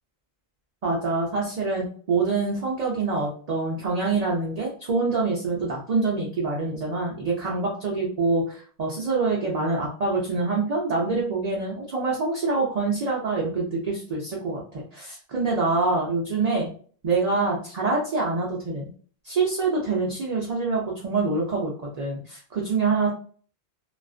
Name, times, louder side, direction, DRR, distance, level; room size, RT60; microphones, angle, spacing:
voice 1, 0.8-16.7 17.0-18.9 19.2-23.1, right 3 dB, 45° right, -4 dB, 0.6 m, -25 dB
2.4 x 2.4 x 2.3 m, 0.44 s
omnidirectional pair, 1.1 m